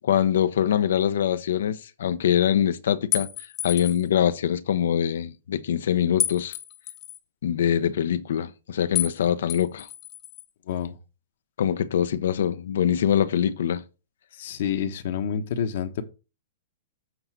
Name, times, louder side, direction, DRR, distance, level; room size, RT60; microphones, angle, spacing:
voice 1, 0.0-3.3 3.6-6.5 7.4-9.9 11.6-13.8, left 9 dB, 75° left, 0.7 m, -23 dB
sound 1, 3.1-4.1 6.2-7.2 8.9-9.2 9.5-10.4, left 13 dB, 30° left, 1.0 m, -30 dB
voice 2, 14.4-16.0, left 8 dB, 55° left, 1.1 m, -28 dB
7.9 x 4.0 x 5.9 m
hypercardioid pair, 155°, 0 cm